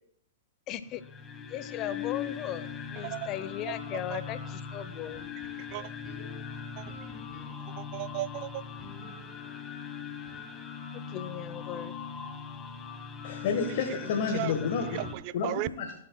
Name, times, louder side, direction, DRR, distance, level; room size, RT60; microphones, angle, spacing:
voice 1, 0.7-1.0 1.5-5.2 11.1-11.9, left 11 dB, 35° left, 0.7 m, -37 dB
sound 1, 0.9-15.1, left 6 dB, 20° left, 1.1 m, -40 dB
sound 2, 5.1-7.9 8.8-10.8, left 1 dB, 5° right, 3.0 m, -52 dB
voice 2, 5.6-5.9 6.8-6.9 7.8-8.6 14.3-14.5 14.9-15.7, right 16 dB, 45° right, 0.4 m, -35 dB
voice 3, 13.2-15.0 15.3-15.9, left 5 dB, 60° left, 1.4 m, -30 dB
18.0 x 7.5 x 2.3 m
hypercardioid pair, 125°, 0 cm